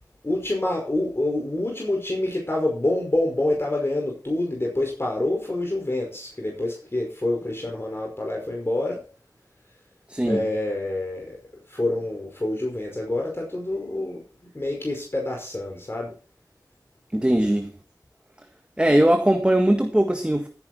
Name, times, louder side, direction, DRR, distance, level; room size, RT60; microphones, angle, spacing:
voice 1, 0.2-9.0 10.2-11.4 11.7-14.2 14.5-16.1, left 1 dB, 35° left, 5.2 m, -27 dB
voice 2, 10.1-10.5 17.1-17.7 18.8-20.5, right 1 dB, 15° right, 1.6 m, -20 dB
15.5 x 9.8 x 4.3 m
wide cardioid pair, 45°, 7 cm